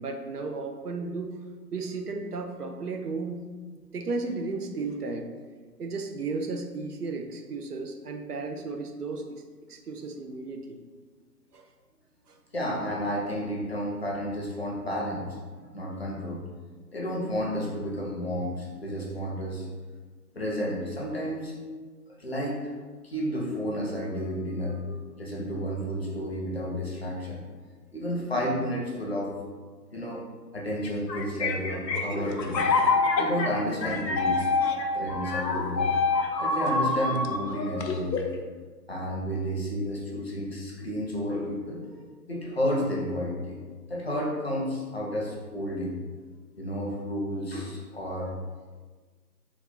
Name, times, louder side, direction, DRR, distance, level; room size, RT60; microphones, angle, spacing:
voice 1, 0.0-1.4 1.7-3.4 3.9-5.3 5.8-9.4 9.7-10.8 11.5-11.7 12.3-12.4, right 3 dB, 65° right, 4 dB, 0.6 m, -34 dB
voice 2, 12.5-15.4 15.7-16.4 16.9-19.7 20.4-21.5 22.2-22.7 23.0-27.4 27.9-29.3 29.9-30.2 30.5-32.7 33.2-34.5 34.9-35.9 36.4-38.3 38.9-42.0 42.3-43.6 43.9-45.9 46.6-48.3, equal, 40° left, -3 dB, 0.7 m, -31 dB
sound 1, 30.8-38.4, left 3 dB, 85° left, 0.6 m, -27 dB
3.5 x 2.3 x 3.9 m, 1.4 s
figure-of-eight pair, 145°, 50 cm